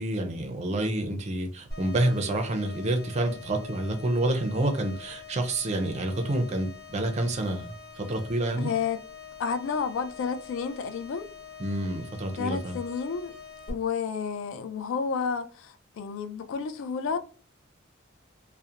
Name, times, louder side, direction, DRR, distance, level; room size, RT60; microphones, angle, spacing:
voice 1, 0.0-8.7 11.6-12.8, right 1 dB, 35° right, 0.4 m, -28 dB
sound 1, 1.7-13.7, left 5 dB, 20° left, 1.2 m, -46 dB
voice 2, 8.6-9.0 9.4-11.3 12.4-13.3 13.7-17.2, left 6 dB, 70° left, 0.3 m, -31 dB
2.7 x 2.0 x 2.4 m
head